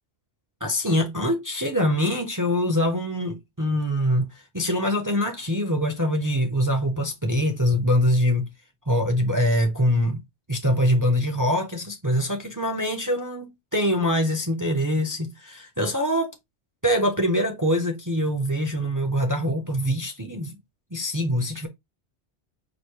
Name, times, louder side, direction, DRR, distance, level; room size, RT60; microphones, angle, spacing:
voice 1, 0.6-8.5 8.9-10.2 10.5-16.3 16.8-20.6 20.9-21.7, equal, 20° right, 0.6 m, -24 dB
5.0 x 2.1 x 4.5 m
omnidirectional pair, 1.2 m